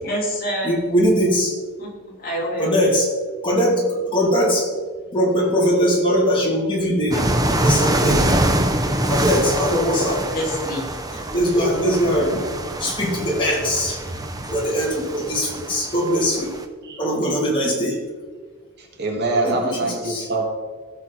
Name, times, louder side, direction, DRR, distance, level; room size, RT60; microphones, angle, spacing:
voice 1, 0.0-0.8 1.8-2.7 10.3-10.9, equal, 45° left, -5 dB, 3.7 m, -27 dB
voice 2, 0.6-1.5 2.6-3.1 3.4-4.7 5.1-8.4 8.8-10.2 11.1-12.4 12.8-14.2 14.5-16.5 17.0-18.0 19.4-19.7 20.1-20.2, equal, 20° left, -3 dB, 2.9 m, -21 dB
sound 1, 7.1-16.6, right 1 dB, 15° right, 0.7 m, -24 dB
voice 3, 18.8-20.4, right 2 dB, 50° right, 0 dB, 2.0 m, -24 dB
16.0 x 6.2 x 4.2 m, 1.5 s
head